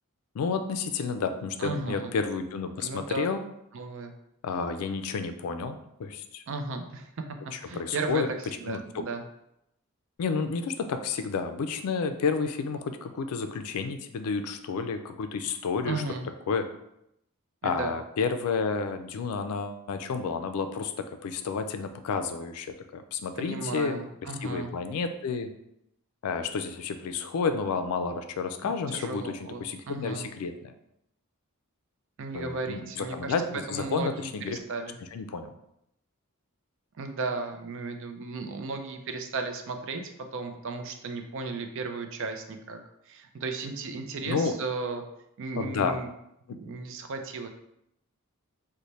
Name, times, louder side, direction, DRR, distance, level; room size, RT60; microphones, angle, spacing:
voice 1, 0.3-3.4 4.4-6.4 7.5-8.3 8.7-9.0 10.2-16.0 16.5-16.7 17.6-24.0 24.4-25.5 26.2-30.7 32.3-34.6 35.1-35.5 44.3-44.5 45.6-46.0, left 5 dB, 80° left, 9 dB, 0.4 m, -31 dB
voice 2, 1.6-2.1 2.8-3.3 3.7-4.1 6.5-7.1 7.6-8.2 8.6-9.2 15.8-16.3 17.6-17.9 23.4-24.7 28.6-30.3 32.2-35.0 37.0-40.0 40.3-42.8 43.1-45.0 45.4-46.1 46.5-47.5, right 3 dB, 60° right, 6 dB, 0.4 m, -35 dB
3.2 x 2.1 x 4.0 m, 0.81 s
head